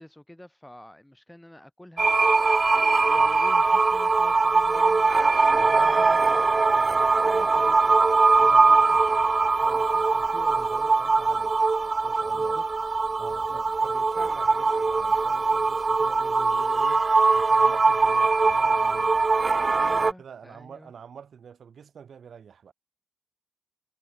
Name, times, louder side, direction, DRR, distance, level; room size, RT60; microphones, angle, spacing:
voice 1, 0.0-5.1 5.5-6.5 7.1-8.1 8.4-9.3 12.3-13.0 13.3-13.6 19.7-20.9, left 1 dB, 10° left, 3.9 m, -48 dB
sound 1, 2.0-20.1, right 3 dB, 40° right, 0.8 m, -21 dB
voice 2, 5.5-7.1 8.3-9.2 9.6-11.6 12.0-12.6 13.2-19.2 19.9-22.7, right 7 dB, 70° right, 3.2 m, -46 dB
supercardioid pair, 45°, 0 cm